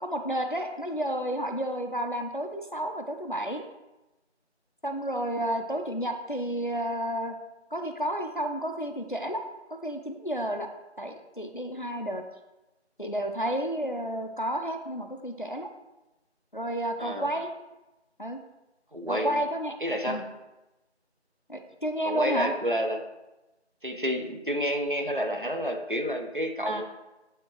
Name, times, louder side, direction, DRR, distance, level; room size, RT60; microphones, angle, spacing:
voice 1, 0.0-3.6 4.8-7.4 7.7-9.4 9.8-10.7 11.0-12.2 13.0-15.7 16.5-17.5 18.2-18.4 19.1-19.7 20.1-20.2 21.5-22.5 26.7-26.8, right 1 dB, 45° left, 5 dB, 0.6 m, -31 dB
voice 2, 17.0-17.3 18.9-19.4 19.8-20.3 22.0-23.1 23.8-26.8, equal, 50° right, 4 dB, 0.8 m, -29 dB
9.7 x 3.6 x 3.0 m, 1.0 s
figure-of-eight pair, 180°, 34 cm